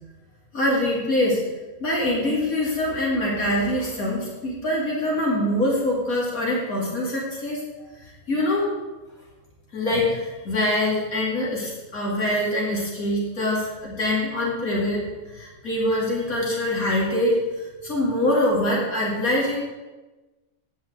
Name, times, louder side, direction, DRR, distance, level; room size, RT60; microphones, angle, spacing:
voice 1, 0.5-1.4 1.8-7.7 8.0-8.7 9.7-19.6, left 1 dB, 80° left, -4 dB, 2.9 m, -24 dB
8.7 x 6.0 x 7.8 m, 1.2 s
omnidirectional pair, 1.5 m